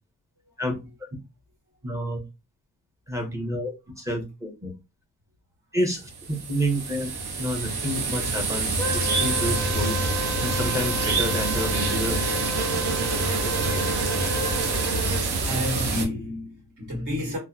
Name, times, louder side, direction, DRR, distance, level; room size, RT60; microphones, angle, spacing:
voice 1, 1.8-2.2 3.1-4.7 5.7-6.1 6.5-7.1 7.4-8.8 9.2-10.0 10.4-12.2 13.6-13.8, equal, 10° right, 0.7 m, -29 dB
sound 1, 6.0-16.0, right 3 dB, 70° right, 0.8 m, -26 dB
Wind instrument woodwind instrument, 8.8-15.1, left 2 dB, 10° left, 0.4 m, -34 dB
voice 2, 15.1-17.4, left 1 dB, 50° right, 1.5 m, -31 dB
2.6 x 2.1 x 2.3 m
wide cardioid pair, 125°, 40 cm